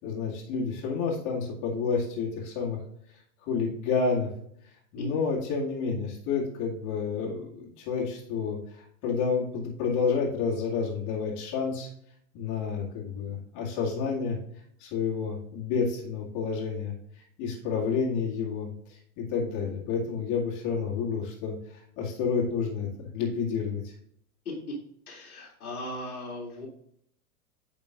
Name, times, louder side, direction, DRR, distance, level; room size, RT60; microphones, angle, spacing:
voice 1, 0.0-2.8 3.5-4.3 4.9-11.9 12.3-14.4 14.8-16.9 17.4-23.9, left 5 dB, 40° left, -3 dB, 2.3 m, -30 dB
voice 2, 25.1-26.7, left 2 dB, 80° left, -2 dB, 2.5 m, -38 dB
9.1 x 5.2 x 2.5 m, 0.68 s
hypercardioid pair, 95°, 44 cm